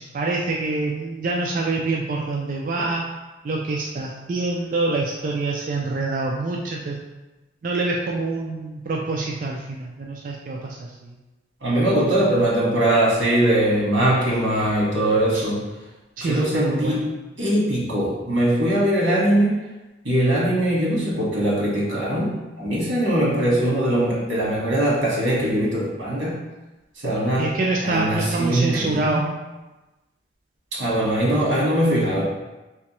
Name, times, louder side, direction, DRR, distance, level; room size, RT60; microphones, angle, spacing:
voice 1, 0.0-3.0 3.5-6.9 7.6-10.8 16.2-16.9 27.4-29.3, right 3 dB, 45° right, -2 dB, 0.3 m, -26 dB
voice 2, 11.6-15.6 16.2-17.1 17.4-19.6 20.0-26.3 27.0-27.6 27.8-29.3 30.8-32.3, right 1 dB, 80° right, -5 dB, 1.3 m, -21 dB
3.4 x 3.0 x 2.9 m, 1.1 s
head